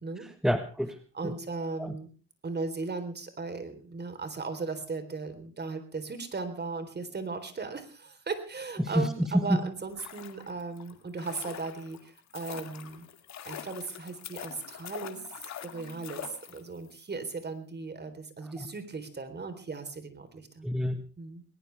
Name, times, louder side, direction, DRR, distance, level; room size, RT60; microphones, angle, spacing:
voice 1, 0.2-1.0 1.2-1.3 1.8-1.9 8.8-9.1 9.3-9.6 18.6-18.7 20.6-21.0, equal, ahead, 8 dB, 1.4 m, -28 dB
voice 2, 1.1-2.1 2.4-13.1 13.4-15.2 15.6-20.7 21.2-21.4, right 4 dB, 35° right, 9 dB, 3.9 m, -37 dB
sound 1, 9.8-16.9 17.2-17.3, left 9 dB, 65° left, 2.5 m, -44 dB
20.0 x 19.5 x 3.5 m, 0.36 s
cardioid pair, 90°, 30 cm